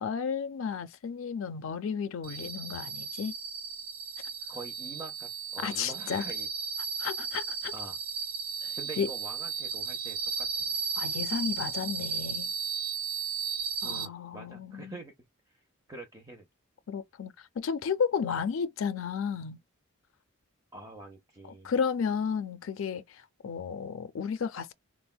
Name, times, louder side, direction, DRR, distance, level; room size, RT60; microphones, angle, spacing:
voice 1, 0.0-3.3 5.6-6.3 7.0-7.7 8.6-9.1 11.0-12.5 13.8-15.0 16.9-19.6 21.6-24.7, left 6 dB, 65° left, 0.4 m, -33 dB
sound 1, 2.2-14.1, right 6 dB, 85° right, 0.6 m, -35 dB
voice 2, 4.5-6.5 7.7-8.0 8.8-10.8 13.8-15.1 15.9-16.5 20.7-21.7, right 2 dB, 15° right, 0.6 m, -45 dB
3.4 x 2.1 x 2.2 m
head